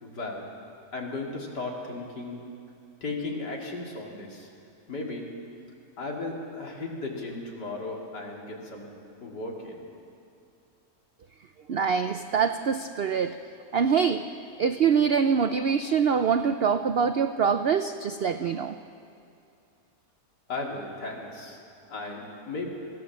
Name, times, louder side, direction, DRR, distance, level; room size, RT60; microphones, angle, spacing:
voice 1, 0.0-0.4 0.9-2.4 3.0-4.5 4.9-5.3 6.0-8.9 9.2-9.9 20.5-21.6 21.9-22.7, left 3 dB, 85° left, -1 dB, 3.2 m, -35 dB
voice 2, 11.7-13.4 13.7-14.3 14.6-18.8, right 6 dB, 80° right, 9 dB, 0.5 m, -24 dB
23.0 x 15.5 x 7.3 m, 2.5 s
omnidirectional pair, 1.8 m